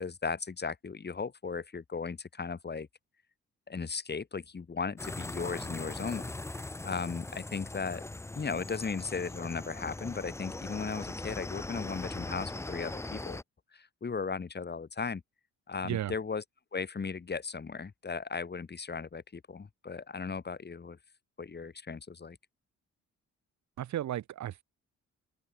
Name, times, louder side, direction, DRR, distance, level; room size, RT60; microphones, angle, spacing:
voice 1, 0.0-2.9 3.7-6.3 6.8-8.0 8.3-13.4 13.7-15.2 15.7-16.4 16.7-21.0 21.4-22.4, left 5 dB, 35° left, 5.0 m, -36 dB
sound 1, 5.0-13.4, left 2 dB, 10° left, 0.7 m, -40 dB
voice 2, 23.8-24.6, right 12 dB, 70° right, 1.7 m, -34 dB
open air
cardioid pair, 90°, 30 cm